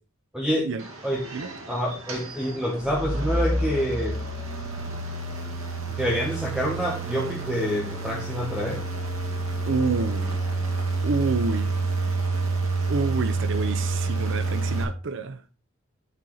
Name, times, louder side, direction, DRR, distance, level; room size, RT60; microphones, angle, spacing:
voice 1, 0.3-0.7 1.0-1.2 1.7-4.2 5.9-8.8, equal, 5° right, 1.4 m, -27 dB
sound 1, 0.8-14.8, right 3 dB, 85° right, 1.8 m, -29 dB
voice 2, 9.6-10.4 11.0-11.7 12.9-15.4, right 4 dB, 65° right, 0.6 m, -28 dB
10.5 x 4.2 x 3.9 m
head